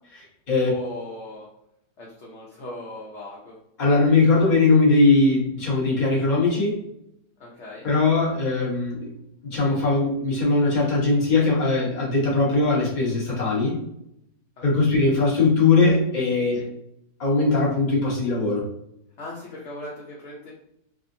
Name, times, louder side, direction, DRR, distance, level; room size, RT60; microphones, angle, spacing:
voice 1, 0.7-1.5 2.0-3.6 7.4-7.9 14.6-15.0 16.5-16.7 19.2-20.5, left 1 dB, 55° left, -4 dB, 0.9 m, -39 dB
voice 2, 3.8-6.8 7.8-9.1 9.4-13.8 14.6-16.6 17.2-18.6, left 3 dB, 35° left, -5 dB, 1.0 m, -20 dB
3.5 x 2.1 x 2.6 m, 0.78 s
omnidirectional pair, 1.7 m